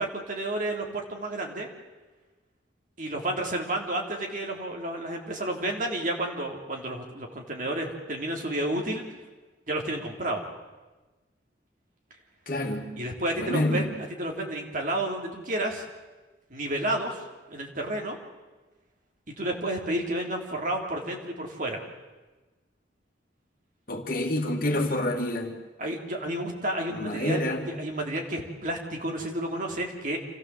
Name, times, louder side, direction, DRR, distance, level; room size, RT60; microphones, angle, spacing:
voice 1, 0.0-1.7 3.0-9.0 9.7-10.4 13.0-13.8 14.2-15.8 16.5-18.2 19.4-21.8 25.8-30.2, right 1 dB, 45° right, 1 dB, 3.3 m, -31 dB
voice 2, 12.5-12.9 13.4-13.9 23.9-25.5 26.9-27.7, left 1 dB, 50° left, 3 dB, 2.3 m, -28 dB
27.5 x 15.0 x 7.7 m, 1.2 s
head